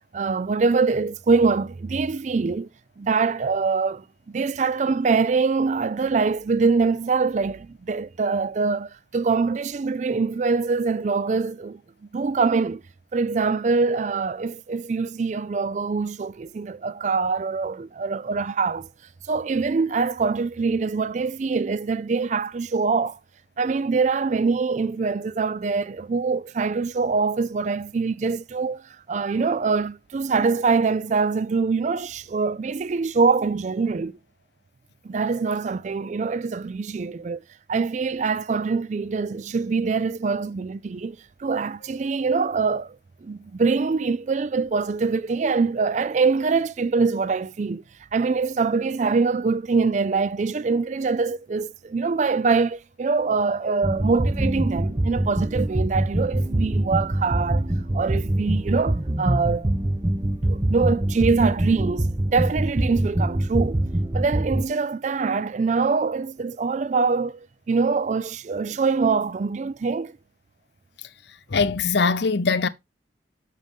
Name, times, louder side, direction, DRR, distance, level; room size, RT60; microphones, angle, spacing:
voice 1, 0.1-2.7 3.0-11.8 12.1-12.8 13.1-18.9 19.3-23.2 23.6-34.2 35.0-37.4 37.7-43.0 43.2-47.8 48.1-57.7 57.9-59.7 60.5-63.8 64.1-67.4 67.7-70.1, right 4 dB, 40° right, 0.3 m, -24 dB
sound 1, 53.8-64.6, right 1 dB, 20° right, 0.7 m, -24 dB
voice 2, 71.5-72.7, left 4 dB, 65° left, 0.6 m, -21 dB
7.5 x 6.5 x 3.5 m
head